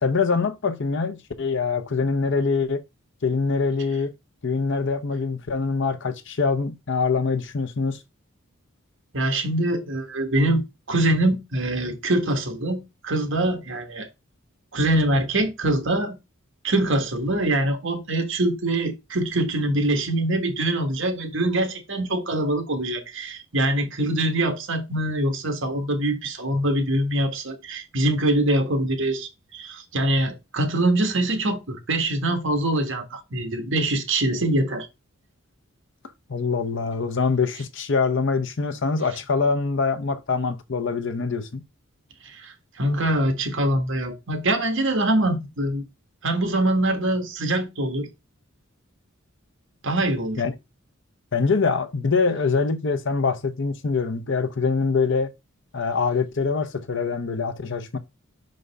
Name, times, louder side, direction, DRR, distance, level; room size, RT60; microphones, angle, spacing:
voice 1, 0.0-2.8 3.2-4.1 4.4-8.0 36.3-41.6 50.4-50.5 51.3-55.3 55.7-58.0, left 4 dB, 60° left, 0.7 m, -24 dB
voice 2, 9.1-14.1 14.7-16.2 16.6-34.9 42.2-45.8 46.2-48.1 49.8-50.4, right 1 dB, 60° right, 1.5 m, -24 dB
5.3 x 5.2 x 3.5 m
head